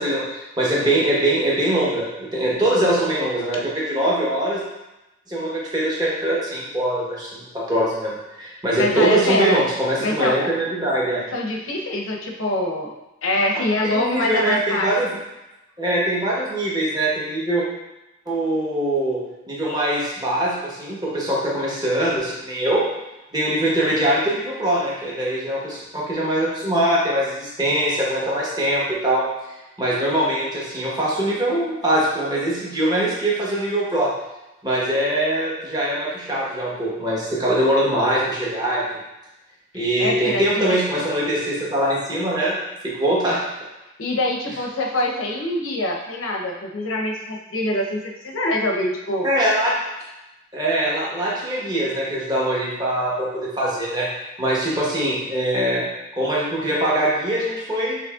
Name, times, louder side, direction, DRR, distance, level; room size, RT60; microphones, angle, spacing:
voice 1, 0.0-4.6 5.3-11.2 13.8-15.1 15.8-17.6 18.3-19.2 19.5-22.8 23.3-34.1 34.6-38.8 39.7-42.6 42.8-43.4 49.2-49.7 50.5-54.1 54.4-55.8 56.1-58.0, right 1 dB, 20° right, -6 dB, 1.1 m, -22 dB
voice 2, 8.8-9.6 10.0-10.5 11.3-12.9 13.2-15.1 40.0-40.8 44.0-49.3, left 1 dB, 80° left, 0 dB, 0.8 m, -24 dB
6.2 x 3.2 x 2.4 m, 0.97 s
head